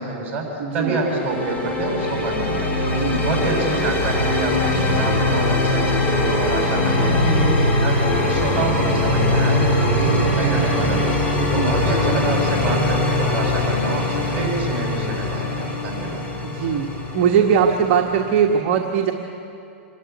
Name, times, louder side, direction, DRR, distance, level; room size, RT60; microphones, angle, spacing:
voice 1, 0.0-11.2 11.5-16.2, right 2 dB, 25° right, -1 dB, 6.8 m, -27 dB
voice 2, 0.6-1.0 2.9-3.2 11.4-11.8 16.5-19.1, right 7 dB, 45° right, 1 dB, 1.4 m, -20 dB
sound 1, 0.8-18.6, left 2 dB, 20° left, 2.7 m, -21 dB
26.5 x 12.5 x 9.6 m, 2.6 s
hypercardioid pair, 150°, 7 cm